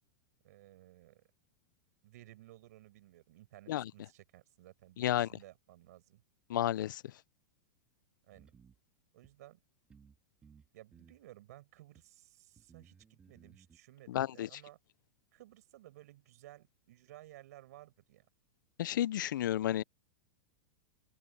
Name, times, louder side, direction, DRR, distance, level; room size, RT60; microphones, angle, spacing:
voice 1, 0.4-1.2 2.0-6.2 8.3-8.5 9.1-9.6 10.7-14.8 15.3-18.3, right 15 dB, 55° right, 6.3 m, -57 dB
voice 2, 5.0-5.3 6.5-7.0 14.1-14.5 18.8-19.8, left 12 dB, 75° left, 0.5 m, -32 dB
sound 1, 8.3-8.8 9.2-9.3 9.9-10.2 10.4-11.2 12.0-12.1 12.6-13.8, right 6 dB, 10° right, 1.8 m, -61 dB
supercardioid pair, 175°, 11 cm